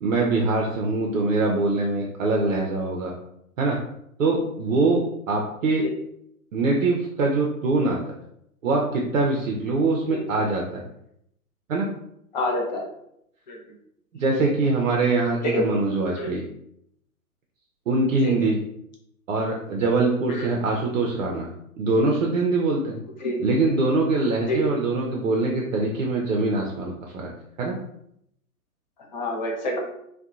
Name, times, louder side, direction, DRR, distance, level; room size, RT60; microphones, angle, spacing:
voice 1, 0.0-3.1 3.6-3.8 4.2-5.9 6.5-8.2 8.6-10.8 11.7-11.9 14.1-16.4 17.9-18.6 19.3-21.5 21.8-23.0 23.4-27.3 27.6-27.8, right 3 dB, 60° right, -1 dB, 0.5 m, -23 dB
voice 2, 12.3-12.9 13.5-13.6 15.4-15.7 16.2-16.3 18.2-18.5 20.3-20.5 23.2-23.4 24.5-24.8 29.1-29.8, left 1 dB, 30° left, 0 dB, 0.5 m, -27 dB
2.6 x 2.2 x 2.3 m, 0.75 s
figure-of-eight pair, 115°, 44 cm